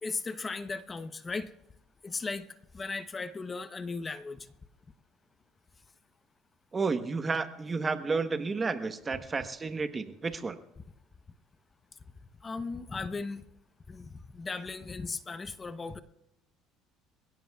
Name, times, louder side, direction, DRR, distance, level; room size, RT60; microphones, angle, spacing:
voice 1, 0.0-1.5 2.0-2.5 2.7-4.5 12.4-13.4 13.9-16.0, left 4 dB, 25° left, 10 dB, 0.9 m, -37 dB
voice 2, 6.7-10.6, right 4 dB, 25° right, 9 dB, 1.1 m, -31 dB
26.5 x 17.0 x 2.4 m, 0.88 s
supercardioid pair, 95°, 0 cm